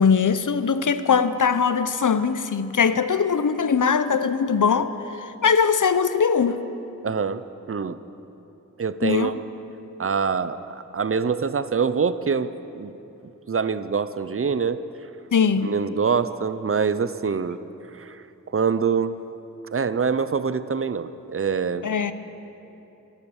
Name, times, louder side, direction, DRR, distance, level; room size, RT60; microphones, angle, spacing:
voice 1, 0.0-6.6 9.0-9.3 15.3-15.7 21.8-22.1, left 6 dB, 70° left, 13 dB, 0.6 m, -21 dB
voice 2, 7.0-8.0 8.8-9.4 10.0-12.5 12.8-12.9 13.5-14.8 15.6-17.6 17.9-18.2 18.5-19.1 19.7-21.9, right 5 dB, 45° right, 14 dB, 0.5 m, -25 dB
12.5 x 12.5 x 7.0 m, 3.0 s
wide cardioid pair, 55°, 32 cm